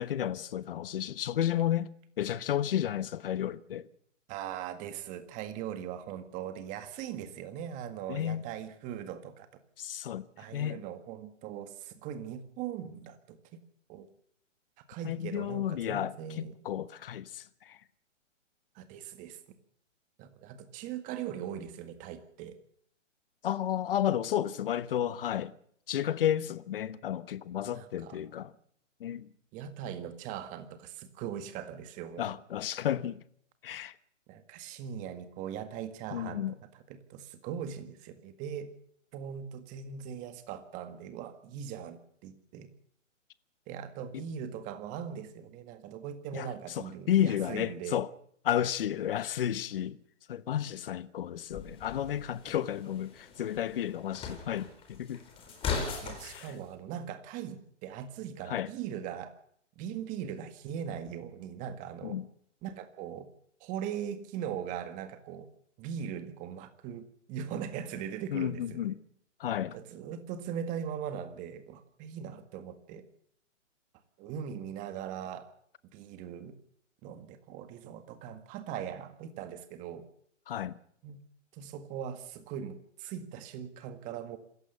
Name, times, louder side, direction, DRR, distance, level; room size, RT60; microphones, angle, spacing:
voice 1, 0.0-1.9 2.2-3.9 8.1-8.5 9.8-10.3 10.5-10.8 15.0-17.8 23.4-25.5 25.9-28.5 29.0-29.3 32.2-33.2 33.6-33.9 36.1-36.5 44.1-44.2 46.3-48.1 48.4-50.0 50.3-55.2 56.2-56.5 58.5-58.7 62.0-62.2 68.3-68.9 69.4-69.8 80.5-80.8, left 11 dB, 45° left, 1.2 m, -32 dB
voice 2, 4.3-9.5 10.4-13.6 13.9-14.1 14.9-16.5 18.8-19.4 20.2-22.5 27.6-28.2 29.5-32.3 34.3-36.4 36.9-38.7 39.1-42.7 43.7-48.0 52.4-52.5 56.0-59.3 59.8-62.2 62.6-63.3 63.6-65.5 65.8-68.9 69.7-73.0 74.2-75.5 75.9-76.5 77.0-80.0 81.0-81.2 81.5-84.4, right 9 dB, 20° right, 1.8 m, -40 dB
sound 1, 51.5-56.5, left 5 dB, 15° left, 4.1 m, -39 dB
26.5 x 14.5 x 7.1 m
hypercardioid pair, 150°, 38 cm